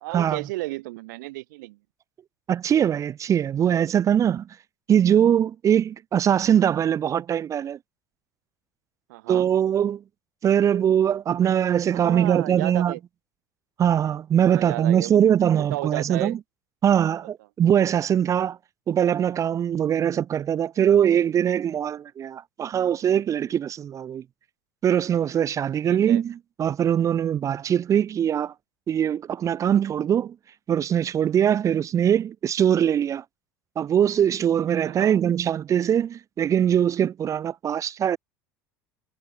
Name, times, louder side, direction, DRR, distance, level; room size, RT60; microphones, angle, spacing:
voice 1, 0.0-1.8 9.1-9.5 11.9-13.0 14.4-16.4 17.2-17.3 25.8-26.2 34.8-35.2, right 20 dB, 75° right, 2.3 m, -33 dB
voice 2, 2.5-4.5 4.9-7.8 9.3-10.0 10.4-12.9 13.8-16.4 16.8-18.6 18.9-24.2 24.8-26.3 26.6-28.5 28.9-30.3 30.7-33.2 33.8-38.2, right 9 dB, 30° right, 0.3 m, -22 dB
hypercardioid pair, 75°, 10 cm